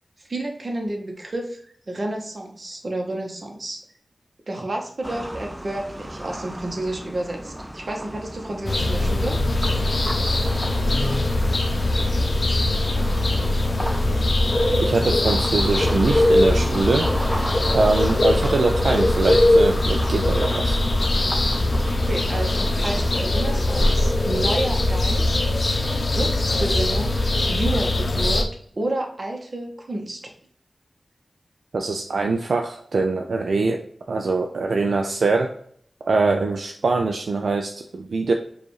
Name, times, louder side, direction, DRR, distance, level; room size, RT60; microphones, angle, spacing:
voice 1, 0.2-3.8 4.5-9.4 21.9-25.4 26.1-27.2 27.5-28.5 28.7-30.3, right 1 dB, 55° right, 2 dB, 1.0 m, -30 dB
sound 1, 5.0-23.2, right 1 dB, 15° right, 0.5 m, -34 dB
sound 2, 8.7-28.4, left 1 dB, 60° left, 0.6 m, -21 dB
voice 2, 14.8-17.1 17.7-20.8 31.7-33.8 34.1-35.5 36.0-38.3, right 3 dB, 85° right, 3 dB, 0.3 m, -23 dB
4.8 x 2.4 x 3.1 m, 0.62 s
cardioid pair, 50°, 0 cm